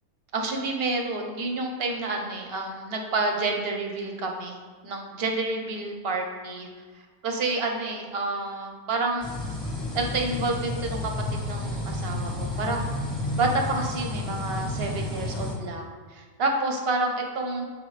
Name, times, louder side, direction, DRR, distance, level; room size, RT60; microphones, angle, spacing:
voice 1, 0.3-4.6 4.8-6.7 6.9-9.3 9.9-12.9 13.4-17.7, right 3 dB, 50° right, 2 dB, 0.9 m, -29 dB
sound 1, 9.2-15.5, left 2 dB, 15° left, 1.1 m, -31 dB
8.0 x 4.6 x 3.2 m, 1.4 s
omnidirectional pair, 1.5 m